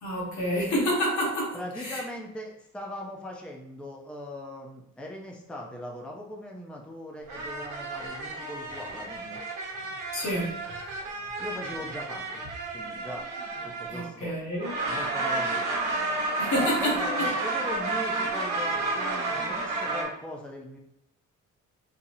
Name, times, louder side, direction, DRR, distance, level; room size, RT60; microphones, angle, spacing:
voice 1, 0.0-2.0 10.1-10.6 13.9-14.7 16.4-17.3, equal, 70° left, -2 dB, 1.3 m, -28 dB
voice 2, 1.5-9.4 11.4-12.4 12.7-13.3 13.6-14.3 14.9-15.8 16.5-20.8, left 1 dB, 5° left, -1 dB, 0.5 m, -40 dB
sound 1, 7.3-14.2 14.6-20.0, right 3 dB, 90° right, 1.0 m, -31 dB
4.0 x 2.8 x 2.7 m, 0.77 s
cardioid pair, 90°, 30 cm